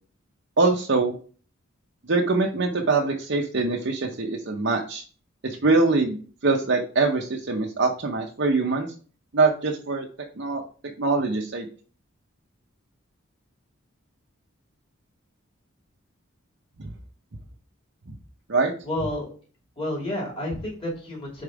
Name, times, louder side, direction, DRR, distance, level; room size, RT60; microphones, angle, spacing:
voice 1, 0.6-1.2 2.1-5.0 5.4-6.2 6.4-8.9 9.3-10.1 10.4-10.6 11.0-11.7 16.8-16.9 18.5-18.7, right 3 dB, 55° right, 0 dB, 0.8 m, -23 dB
voice 2, 18.8-19.3 19.8-21.4, left 1 dB, 25° left, -2 dB, 2.5 m, -30 dB
5.1 x 4.5 x 4.7 m, 0.40 s
head